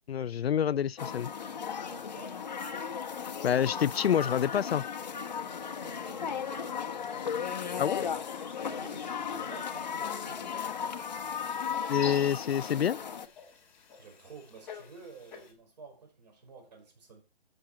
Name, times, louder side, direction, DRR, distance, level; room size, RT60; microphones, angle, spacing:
voice 1, 0.1-1.3 3.4-4.8 7.8-8.0 11.9-13.0, left 9 dB, 70° left, 0.5 m, -27 dB
sound 1, 1.0-13.3, left 7 dB, 40° left, 0.9 m, -36 dB
voice 2, 1.7-2.4 5.6-8.2 8.6-10.9 14.0-17.2, right 4 dB, 40° right, 4.8 m, -52 dB
sound 2, 7.0-15.5, left 5 dB, 5° left, 1.1 m, -49 dB
14.0 x 6.4 x 4.3 m
hypercardioid pair, 170°, 32 cm